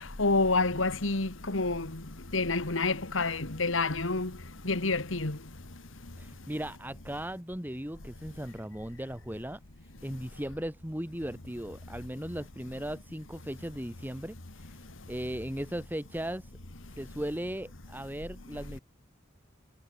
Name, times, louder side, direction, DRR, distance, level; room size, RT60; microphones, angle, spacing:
voice 1, 0.2-1.9 2.3-4.3 4.7-5.4, left 3 dB, 75° left, 2.1 m, -28 dB
voice 2, 6.2-9.6 10.0-14.8 15.1-16.5 16.9-18.8, equal, 10° right, 2.2 m, -37 dB
head